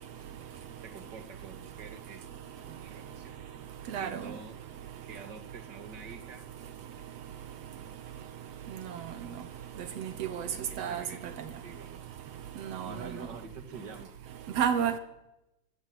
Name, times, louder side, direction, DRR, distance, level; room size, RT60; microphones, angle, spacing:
voice 1, 0.8-3.4 3.9-4.6 5.0-6.5 10.5-12.1 12.7-14.1, right 5 dB, 35° right, 8 dB, 2.0 m, -47 dB
voice 2, 10.0-10.5 10.8-11.0 12.7-12.9 14.6-15.0, right 8 dB, 75° right, 12 dB, 1.5 m, -29 dB
24.0 x 16.0 x 8.0 m, 0.94 s
omnidirectional pair, 4.4 m